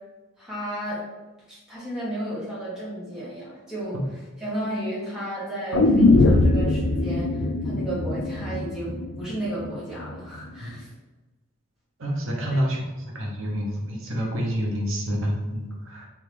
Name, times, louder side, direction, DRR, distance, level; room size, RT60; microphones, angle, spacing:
voice 1, 0.4-1.0 1.5-4.0 4.4-10.9 12.5-12.6, right 1 dB, 5° right, -9 dB, 1.4 m, -33 dB
sound 1, 5.7-9.8 10.1-10.2, left 2 dB, 80° left, 0.5 m, -21 dB
voice 2, 12.0-12.9 13.1-16.1, equal, 75° right, -1 dB, 0.8 m, -28 dB
3.7 x 3.4 x 3.3 m, 1.1 s
head